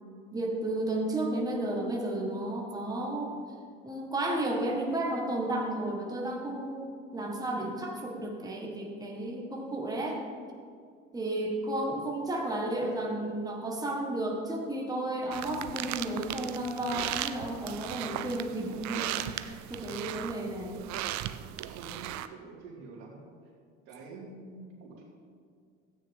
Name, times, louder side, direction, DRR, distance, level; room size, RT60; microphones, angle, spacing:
voice 1, 0.3-3.3 3.8-10.2 11.1-20.9, right 1 dB, 10° right, -1 dB, 1.7 m, -33 dB
sound 1, 15.3-22.3, right 13 dB, 50° right, 0.6 m, -37 dB
voice 2, 21.7-23.2 23.8-25.0, right 3 dB, 75° right, -1 dB, 2.6 m, -47 dB
13.0 x 8.9 x 3.7 m, 2.3 s
supercardioid pair, 85°, 36 cm